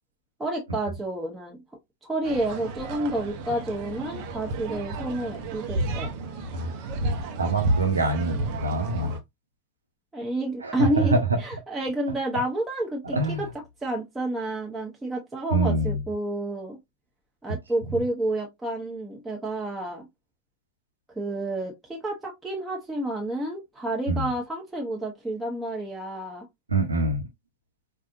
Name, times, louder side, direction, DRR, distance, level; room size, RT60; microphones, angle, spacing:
voice 1, 0.4-1.6 2.0-6.1 10.1-13.5 13.8-16.8 17.4-20.1 21.1-26.5, right 1 dB, 10° right, 1.2 m, -30 dB
sound 1, 2.2-9.2, right 2 dB, 45° right, 0.9 m, -31 dB
voice 2, 7.4-9.1 10.6-11.4 13.1-13.4 15.5-16.0 24.1-24.2 26.7-27.2, right 2 dB, 75° right, 1.1 m, -24 dB
4.7 x 2.5 x 2.6 m
figure-of-eight pair, 90°, 0 cm